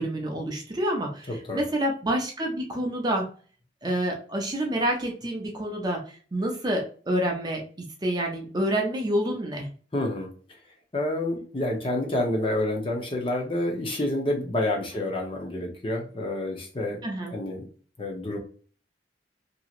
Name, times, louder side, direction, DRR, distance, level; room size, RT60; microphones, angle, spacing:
voice 1, 0.0-3.3 3.8-9.7 17.0-17.3, right 1 dB, 20° right, 1 dB, 0.5 m, -28 dB
voice 2, 1.3-1.6 9.9-10.3 10.9-17.0 17.3-17.7 18.0-18.4, left 1 dB, 30° left, 0 dB, 0.7 m, -28 dB
2.9 x 2.7 x 2.4 m, 0.41 s
head